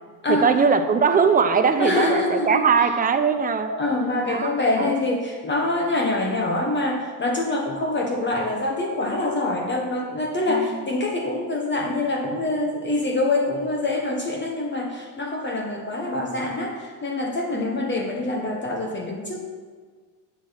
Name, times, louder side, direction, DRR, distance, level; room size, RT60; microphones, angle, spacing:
voice 1, 0.3-3.7 4.3-4.9 10.5-10.8 17.5-17.9, right 5 dB, 20° right, 8 dB, 0.7 m, -21 dB
voice 2, 1.8-2.6 3.6-19.4, left 2 dB, 25° left, 1 dB, 1.1 m, -25 dB
8.2 x 6.1 x 5.7 m, 1.5 s
supercardioid pair, 115°, 44 cm